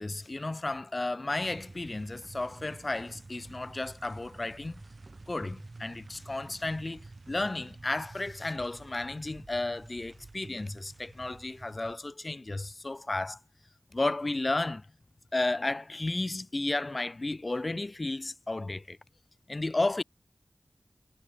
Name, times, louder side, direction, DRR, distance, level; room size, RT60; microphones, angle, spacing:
voice 1, 0.0-4.8 5.3-13.4 13.9-14.9 15.3-19.0 19.5-20.0, left 2 dB, 40° left, 0.7 m, -33 dB
sound 1, 1.4-12.0, right 3 dB, 55° right, 0.9 m, -50 dB
wide cardioid pair, 75°, 0 cm